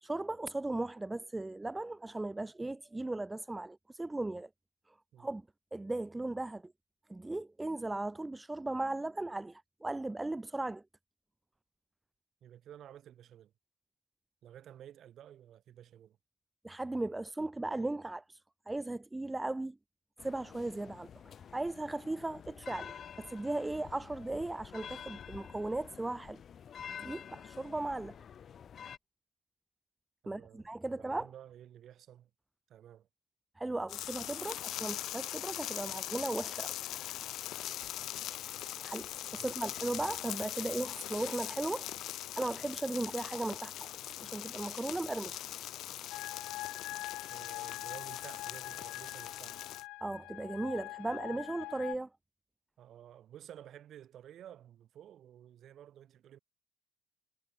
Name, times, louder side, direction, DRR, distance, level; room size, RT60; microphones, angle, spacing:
voice 1, 0.0-4.5 5.2-5.4 5.7-6.7 7.1-10.8 16.6-18.4 18.7-19.8 20.2-21.1 21.5-26.4 26.9-28.2 30.3-31.3 33.6-36.7 38.8-41.9 42.4-43.9 44.2-45.4 50.0-52.1, right 2 dB, 10° right, 1.2 m, -37 dB
voice 2, 12.4-13.5 14.4-16.2 30.2-32.3 32.7-33.1 39.4-39.7 47.3-49.6 52.8-56.4, right 11 dB, 45° right, 5.6 m, -53 dB
sound 1, 20.2-29.0, left 8 dB, 35° left, 2.9 m, -49 dB
sound 2, 33.9-49.8, left 13 dB, 55° left, 0.7 m, -41 dB
sound 3, 46.1-52.0, left 20 dB, 80° left, 5.5 m, -44 dB
cardioid pair, 145°, 0 cm